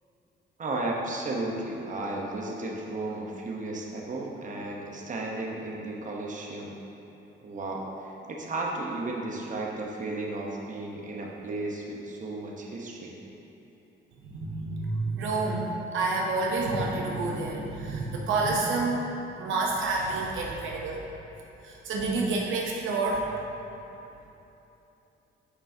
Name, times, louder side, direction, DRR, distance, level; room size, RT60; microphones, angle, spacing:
voice 1, 0.6-6.7 7.4-13.2, right 2 dB, 40° right, -1 dB, 0.9 m, -34 dB
voice 2, 14.2-21.0 21.6-23.3, right 3 dB, 80° right, -2 dB, 0.8 m, -29 dB
8.2 x 5.5 x 2.8 m, 3.0 s
cardioid pair, 90°, 20 cm